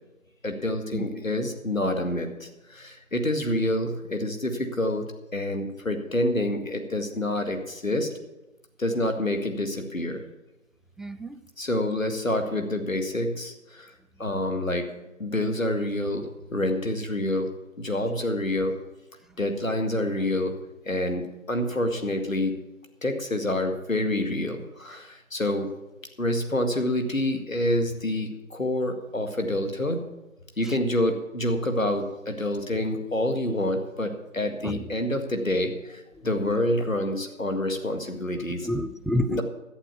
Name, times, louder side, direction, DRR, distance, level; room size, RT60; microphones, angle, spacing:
voice 1, 0.4-5.1 5.3-8.1 8.8-10.2 11.6-13.9 14.2-17.5 17.8-18.7 19.4-20.6 20.9-22.6 23.0-25.7 26.2-30.0 30.6-38.7 39.3-39.4, left 1 dB, 70° left, 6 dB, 2.0 m, -27 dB
voice 2, 11.0-11.4 30.6-30.7 34.6-34.8 36.2-36.3 38.6-39.4, equal, ahead, 11 dB, 0.3 m, -29 dB
11.5 x 8.1 x 7.0 m, 1.0 s
figure-of-eight pair, 175°, 41 cm